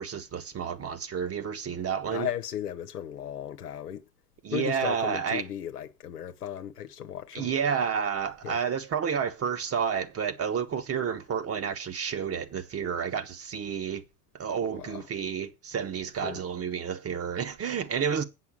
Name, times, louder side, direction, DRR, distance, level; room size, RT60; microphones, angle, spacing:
voice 1, 0.0-2.3 4.4-5.4 7.3-14.0 14.3-18.2, right 7 dB, 30° right, 1.2 m, -30 dB
voice 2, 2.1-4.0 4.5-7.5 8.4-8.6 14.7-15.1 16.2-16.4, left 10 dB, 85° left, 1.0 m, -36 dB
8.2 x 6.0 x 7.3 m
hypercardioid pair, 80°, 45 cm